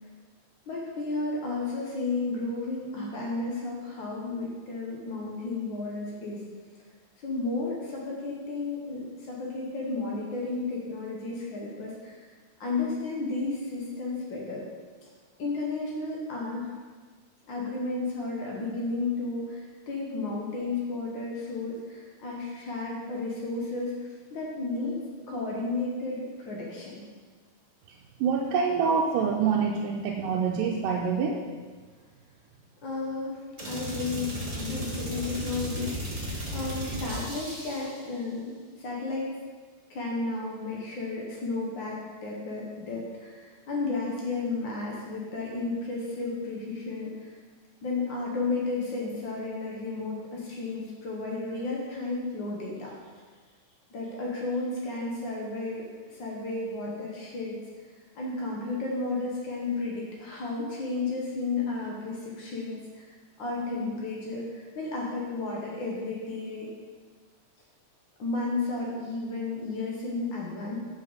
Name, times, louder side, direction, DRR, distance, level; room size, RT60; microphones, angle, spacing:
voice 1, 0.7-6.4 7.2-12.2 12.6-14.6 15.0-15.1 15.4-16.8 17.5-25.0 25.3-27.0 32.8-39.3 39.9-47.3 47.8-52.9 53.9-57.9 58.1-63.1 63.4-66.7 68.2-70.8, left 3 dB, 85° left, -3 dB, 1.0 m, -33 dB
voice 2, 28.2-31.4, right 6 dB, 80° right, -1 dB, 2.1 m, -26 dB
sound 1, 33.6-38.0, equal, 40° right, 0.5 m, -35 dB
7.4 x 6.7 x 4.0 m, 1.5 s
omnidirectional pair, 3.9 m